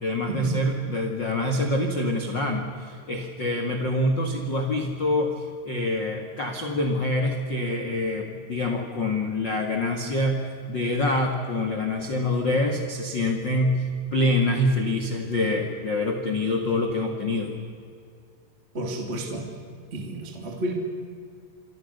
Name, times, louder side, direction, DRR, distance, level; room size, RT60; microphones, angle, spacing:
voice 1, 0.0-17.5, left 1 dB, 60° left, 3 dB, 1.2 m, -26 dB
voice 2, 18.7-19.5 19.9-20.7, right 1 dB, 20° right, 2 dB, 2.2 m, -31 dB
28.0 x 25.0 x 6.7 m, 2.3 s
omnidirectional pair, 5.4 m